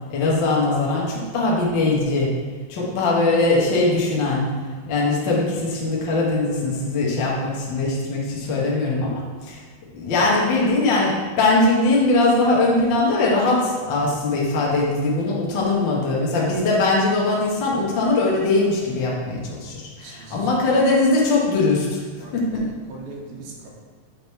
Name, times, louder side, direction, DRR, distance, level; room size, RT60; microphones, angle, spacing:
voice 1, 0.1-2.4 2.7-4.5 4.9-9.1 9.4-9.6 9.9-22.0 22.3-22.7, left 2 dB, 75° left, -4 dB, 1.0 m, -21 dB
voice 2, 20.0-20.8 22.2-23.7, right 3 dB, 80° right, -2 dB, 2.9 m, -40 dB
8.1 x 3.6 x 4.6 m, 1.5 s
omnidirectional pair, 4.3 m